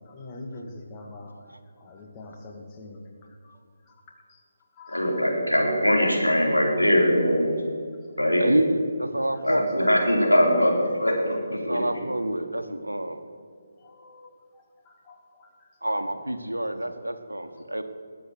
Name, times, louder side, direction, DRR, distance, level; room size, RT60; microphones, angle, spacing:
voice 1, 0.0-1.4 1.8-3.0 3.4-4.0 4.3-4.4 4.7-5.3 9.2-9.3 13.8-15.7, left 2 dB, 20° left, 0 dB, 1.8 m, -45 dB
voice 2, 4.9-7.5 8.2-8.4 9.4-11.8, equal, 85° left, -2 dB, 4.1 m, -22 dB
voice 3, 8.4-9.9 11.5-13.2 15.8-17.8, right 1 dB, 80° right, 8 dB, 1.3 m, -28 dB
20.5 x 8.0 x 6.4 m, 2.1 s
figure-of-eight pair, 145°, 0 cm